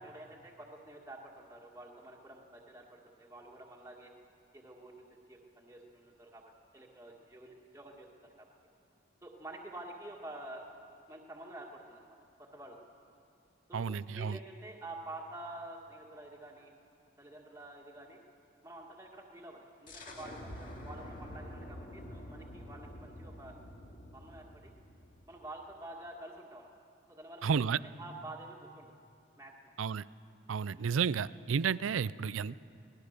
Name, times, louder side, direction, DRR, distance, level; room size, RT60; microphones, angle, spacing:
voice 1, 0.0-4.1 4.5-8.1 8.4-8.5 9.2-10.7 11.1-12.2 12.5-12.8 13.7-13.9 14.1-16.7 17.2-18.2 18.6-23.5 24.1-24.7 25.3-26.7 27.1-28.9 29.4-29.7 30.7-31.0, right 2 dB, 15° right, -2 dB, 1.9 m, -49 dB
voice 2, 13.7-14.4 27.4-27.8 29.8-30.0 30.5-32.6, right 6 dB, 85° right, 18 dB, 0.4 m, -32 dB
sound 1, 19.9-25.4, left 1 dB, 40° left, 2.4 m, -47 dB
25.0 x 19.0 x 6.7 m, 2.6 s
head